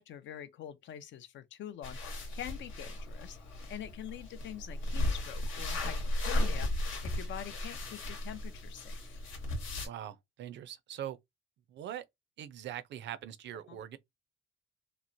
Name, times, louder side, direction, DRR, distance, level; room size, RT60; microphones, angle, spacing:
voice 1, 0.0-3.4 3.7-6.7 7.0-9.2 13.7-13.8, left 11 dB, 70° left, 0.5 m, -45 dB
sound 1, 1.8-9.9, left 1 dB, 85° left, 1.1 m, -35 dB
voice 2, 9.8-11.2 11.7-12.0 12.4-14.0, right 11 dB, 65° right, 0.4 m, -42 dB
2.9 x 2.0 x 2.6 m
cardioid pair, 90°, 20 cm